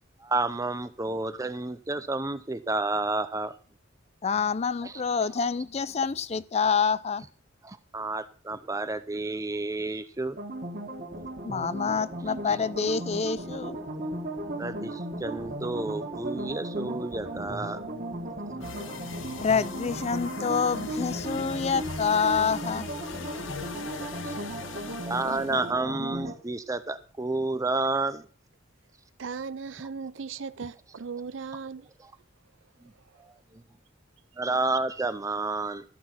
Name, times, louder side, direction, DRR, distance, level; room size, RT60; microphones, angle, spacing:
voice 1, 0.2-3.5 4.8-4.9 7.6-10.4 14.6-17.8 23.3-23.5 24.0-24.1 25.1-28.2 34.4-35.8, right 2 dB, 15° right, 0.5 m, -30 dB
voice 2, 4.2-7.2 11.4-13.8 18.9-19.0 19.4-22.9, left 5 dB, 35° left, 0.4 m, -27 dB
sound 1, 10.4-26.3, right 1 dB, 45° right, 1.9 m, -36 dB
sound 2, 18.6-25.7, left 5 dB, 75° left, 1.0 m, -40 dB
voice 3, 29.2-31.9 32.9-33.2, right 5 dB, 70° right, 0.6 m, -37 dB
13.5 x 6.2 x 5.9 m
head